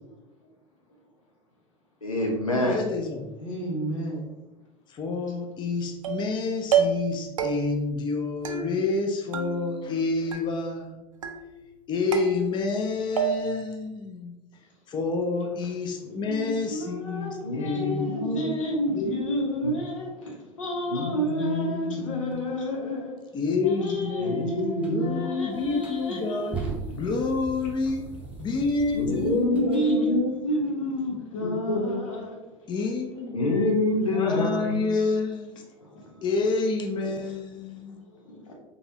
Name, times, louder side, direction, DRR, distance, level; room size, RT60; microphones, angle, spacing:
voice 1, 2.0-2.9 17.4-18.5 19.6-19.8 20.9-22.4 24.2-25.3 28.9-30.3 31.4-32.1 33.3-34.9, left 2 dB, 85° left, -1 dB, 0.6 m, -27 dB
voice 2, 2.6-3.3 4.9-11.0 11.9-14.3 14.9-18.4 18.9-19.1 23.3-24.4 24.9-26.6 27.0-28.0 28.4-30.1 32.7-33.8 34.1-35.6 36.2-38.0, left 3 dB, 25° left, 3 dB, 0.6 m, -28 dB
voice 3, 3.4-4.3 16.0-23.2 23.6-27.1 29.2-32.4 35.8-36.3 37.9-38.5, equal, 70° left, -1 dB, 1.1 m, -31 dB
sound 1, 6.0-6.4 6.7-7.1 7.4-7.9 8.4-9.0 9.3-10.0 10.3-10.8 11.2-11.7 12.1-12.8 13.2-13.7, right 7 dB, 75° right, 0.5 m, -29 dB
sound 2, 24.8-25.0 25.6-29.8, right 5 dB, 5° right, 0.9 m, -39 dB
3.9 x 3.6 x 2.8 m, 1.0 s
figure-of-eight pair, 75°, 17 cm